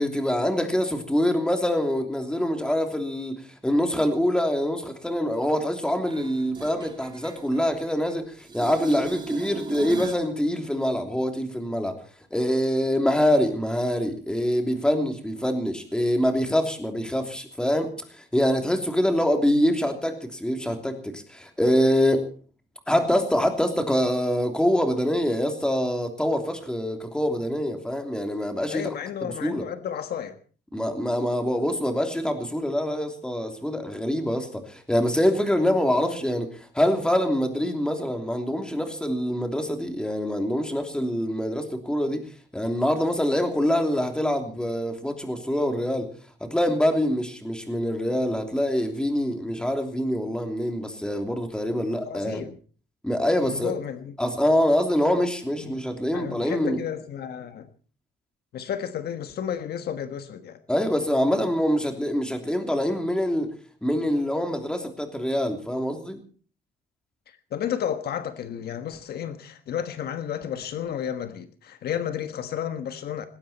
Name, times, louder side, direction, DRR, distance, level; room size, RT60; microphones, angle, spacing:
voice 1, 0.0-12.0 12.3-22.3 22.9-28.9 29.2-29.6 30.7-46.1 46.4-52.5 53.0-53.7 54.2-56.8 60.7-63.5 63.8-66.2, equal, 5° left, 3.1 m, -25 dB
sound 1, 6.1-8.1 8.4-10.3 16.0-16.1, right 4 dB, 25° right, 2.3 m, -36 dB
voice 2, 28.7-30.4 51.8-52.5 53.4-54.1 55.6-55.8 56.1-57.7 58.5-60.6 67.3-73.3, left 9 dB, 60° left, 1.4 m, -32 dB
19.5 x 17.0 x 4.3 m
cardioid pair, 140°, 18 cm